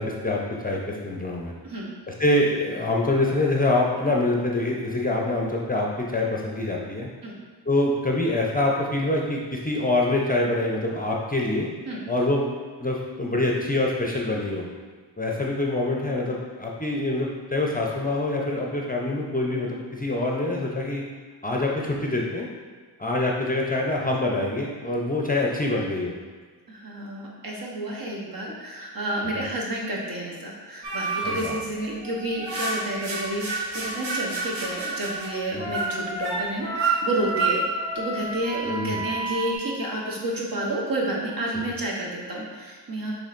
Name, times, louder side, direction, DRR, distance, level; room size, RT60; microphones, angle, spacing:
voice 1, 0.0-1.5 2.2-7.1 7.7-11.7 12.1-12.4 12.8-14.7 15.2-21.0 21.4-22.5 23.0-26.2 29.4-29.5 31.2-31.6 35.5-35.7 38.7-39.0, left 2 dB, 20° left, -2 dB, 0.6 m, -25 dB
voice 2, 26.7-37.6 37.9-43.2, right 1 dB, 50° right, -3 dB, 1.1 m, -30 dB
sound 1, 30.8-31.5 32.0-39.6, right 3 dB, 90° right, 0.9 m, -29 dB
6.2 x 3.2 x 2.5 m, 1.5 s
cardioid pair, 50°, 45 cm